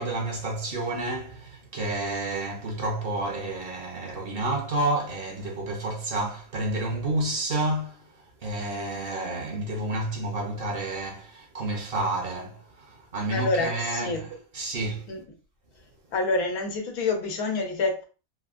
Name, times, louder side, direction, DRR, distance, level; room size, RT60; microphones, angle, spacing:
voice 1, 0.0-8.1 8.4-15.1, right 2 dB, 50° right, 0.8 m, -30 dB
voice 2, 13.3-14.2 15.1-15.2 16.1-18.0, left 3 dB, 90° left, 1.2 m, -27 dB
3.4 x 2.2 x 2.4 m
omnidirectional pair, 1.5 m